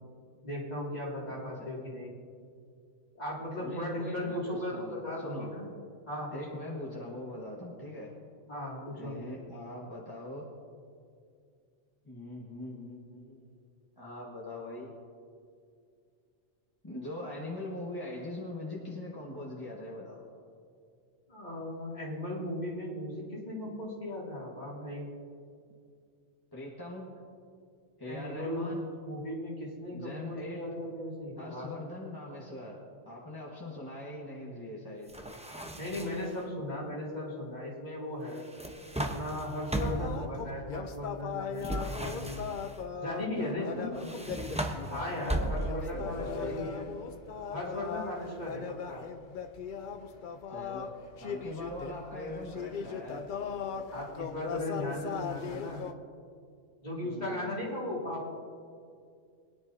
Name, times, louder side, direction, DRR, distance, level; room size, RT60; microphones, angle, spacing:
voice 1, 0.4-2.2 3.1-5.7 6.1-6.6 8.5-9.2 21.3-25.1 28.0-28.8 29.0-31.7 35.7-38.4 39.0-42.4 43.0-43.9 44.9-46.9 47.5-49.0 53.9-55.8 56.8-58.4, left 1 dB, 35° left, -5 dB, 2.6 m, -37 dB
voice 2, 3.6-5.5 6.3-8.1 8.9-10.4 12.0-13.5 14.0-14.9 16.8-20.3 26.5-27.1 28.0-28.8 29.9-30.6 31.4-32.8 33.0-35.1 43.4-44.1 45.4-46.5 50.5-50.9 51.2-53.2 57.0-57.9, left 1 dB, 20° left, -5 dB, 1.4 m, -42 dB
sound 1, 35.1-36.4 38.3-40.2 41.6-42.8 44.0-45.9, right 1 dB, 5° right, 0.6 m, -36 dB
sound 2, 39.8-55.9, left 6 dB, 55° left, 0.6 m, -39 dB
22.5 x 10.0 x 2.7 m, 2.3 s
omnidirectional pair, 1.3 m